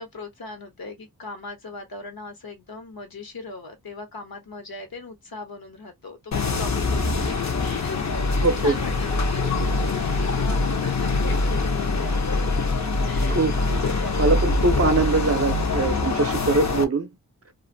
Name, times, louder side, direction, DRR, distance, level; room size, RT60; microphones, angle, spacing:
voice 1, 0.0-12.4 13.0-13.4 13.7-14.3, left 3 dB, 70° left, 1.1 m, -39 dB
sound 1, 6.3-16.8, left 3 dB, 50° left, 0.7 m, -24 dB
voice 2, 8.4-8.7 10.1-10.2 13.3-13.8 14.2-17.1, right 3 dB, 40° right, 0.6 m, -22 dB
2.5 x 2.5 x 2.5 m
wide cardioid pair, 70°, 37 cm